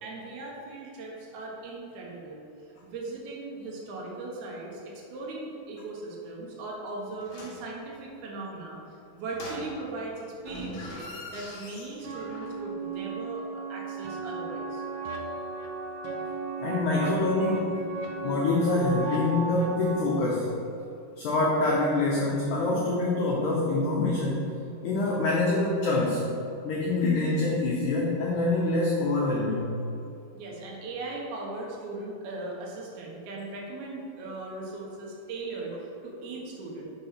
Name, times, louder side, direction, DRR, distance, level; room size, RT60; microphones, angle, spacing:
voice 1, 0.0-2.4 2.8-8.8 9.1-14.8 30.3-36.9, right 2 dB, 65° right, -2 dB, 2.0 m, -38 dB
sound 1, 7.2-7.7 9.3-10.1 10.4-12.7 12.9-13.0, left 1 dB, 65° left, 1.7 m, -43 dB
sound 2, 12.0-20.0, right 4 dB, 85° right, 1.9 m, -35 dB
voice 2, 16.6-17.8 18.2-20.5 21.2-24.5 24.8-26.3 26.6-29.8, left 2 dB, 90° left, -4 dB, 1.7 m, -25 dB
5.9 x 5.4 x 4.3 m, 2.7 s
omnidirectional pair, 4.5 m